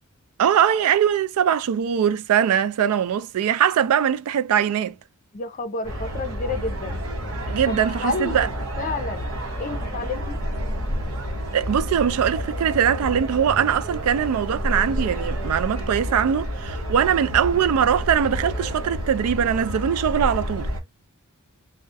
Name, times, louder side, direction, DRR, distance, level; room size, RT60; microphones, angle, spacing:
voice 1, 0.4-4.9 7.5-8.5 11.5-20.7, right 8 dB, 85° right, 0.3 m, -21 dB
voice 2, 5.3-7.1 7.7-8.5 8.8-9.3 9.6-10.4, left 3 dB, 35° left, 0.5 m, -30 dB
sound 1, 5.8-20.8, equal, 70° right, 0.9 m, -29 dB
2.3 x 2.1 x 2.5 m
head